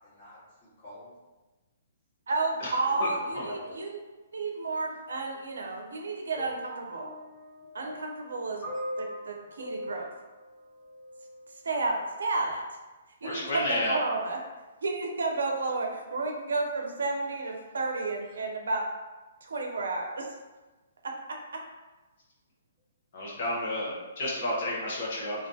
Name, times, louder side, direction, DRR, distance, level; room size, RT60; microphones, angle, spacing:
voice 1, 0.0-1.1 2.4-3.8, left 1 dB, 30° left, -10 dB, 1.3 m, -47 dB
voice 2, 2.3-4.0 4.3-7.1 7.7-8.6 9.0-10.1 11.6-12.6 13.2-14.4 14.8-18.8 19.4-20.2, right 3 dB, 85° right, 1 dB, 0.4 m, -31 dB
sound 1, 6.4-11.5 12.4-12.5, equal, 10° right, 1.0 m, -41 dB
voice 3, 13.2-13.9 23.1-25.5, left 1 dB, 55° left, -5 dB, 0.8 m, -31 dB
2.5 x 2.2 x 2.6 m, 1.2 s
hypercardioid pair, 155°, 0 cm